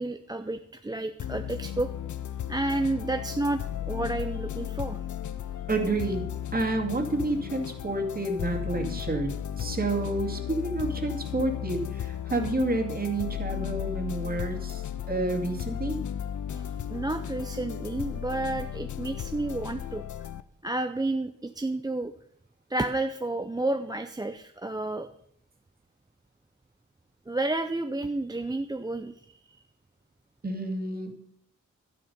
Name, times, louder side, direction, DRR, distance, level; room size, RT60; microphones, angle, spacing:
voice 1, 0.0-1.9 2.5-3.6 3.9-5.0 16.5-20.0 20.6-22.1 22.7-25.1 27.3-29.2 29.5-29.6, right 2 dB, 15° right, 7 dB, 0.6 m, -31 dB
sound 1, 1.2-20.4, left 10 dB, 70° left, 0.7 m, -35 dB
voice 2, 5.7-16.0 30.4-31.1, right 2 dB, 30° right, 2 dB, 2.4 m, -30 dB
12.0 x 10.5 x 5.4 m, 0.66 s
wide cardioid pair, 115°, 31 cm